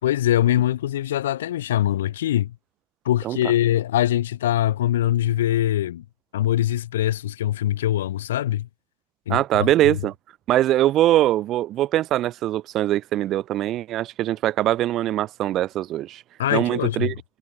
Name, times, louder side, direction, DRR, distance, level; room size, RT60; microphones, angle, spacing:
voice 1, 0.0-2.5 3.0-6.0 6.3-8.7 9.3-9.7 16.4-17.1, left 12 dB, 60° left, 4.2 m, -22 dB
voice 2, 9.3-10.1 10.5-16.2 16.5-17.1, right 13 dB, 35° right, 4.5 m, -22 dB
figure-of-eight pair, 90°, 0 cm